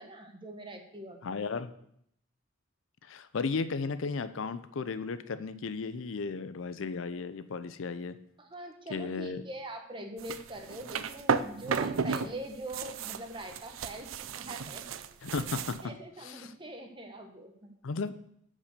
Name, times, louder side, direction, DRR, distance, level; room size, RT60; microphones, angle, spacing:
voice 1, 0.0-1.4 8.4-14.9 15.8-17.7, right 1 dB, 25° right, 3 dB, 1.3 m, -43 dB
voice 2, 1.2-1.7 3.0-8.2 8.9-9.4 15.2-15.9 16.3-16.5 17.8-18.1, left 4 dB, 75° left, 13 dB, 0.5 m, -35 dB
sound 1, 10.2-12.3 12.6-15.8, right 6 dB, 90° right, 0.5 m, -33 dB
8.6 x 5.2 x 6.7 m, 0.71 s
head